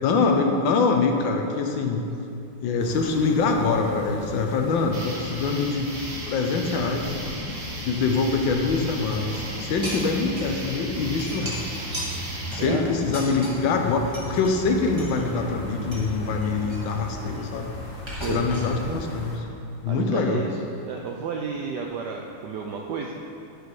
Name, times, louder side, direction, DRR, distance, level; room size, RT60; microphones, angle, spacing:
voice 1, 0.0-2.0 2.6-5.9 6.3-7.1 7.9-11.6 12.5-17.7 18.3-19.4 19.8-20.5, left 4 dB, 75° left, 3 dB, 1.3 m, -24 dB
sound 1, 2.8-19.4, left 1 dB, 40° left, 0.8 m, -37 dB
sound 2, 4.9-12.6, right 1 dB, 40° right, 1.2 m, -37 dB
sound 3, 9.0-10.7 10.9-13.8 14.1-14.5 15.0-16.1 16.4-17.6 18.1-18.7, equal, 15° right, 1.4 m, -38 dB
voice 2, 12.6-12.9 18.1-18.5 19.9-20.5 20.8-23.2, right 5 dB, 80° right, 1 dB, 0.9 m, -32 dB
11.0 x 4.7 x 4.6 m, 2.7 s
omnidirectional pair, 2.3 m